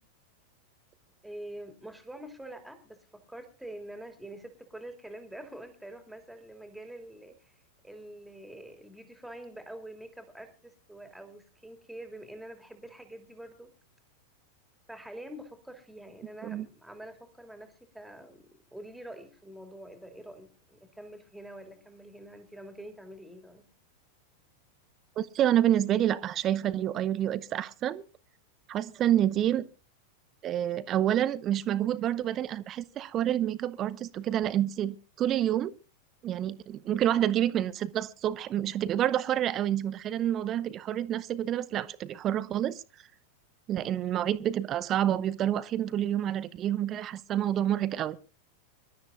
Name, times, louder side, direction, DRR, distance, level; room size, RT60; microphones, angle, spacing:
voice 1, 1.2-13.7 14.9-18.4 18.7-23.6, right 1 dB, ahead, 2.8 m, -46 dB
voice 2, 25.2-28.0 28.7-29.7 30.4-35.7 36.2-42.8 43.7-48.2, right 11 dB, 30° right, 0.7 m, -28 dB
25.5 x 12.5 x 2.5 m
figure-of-eight pair, 90°, 0 cm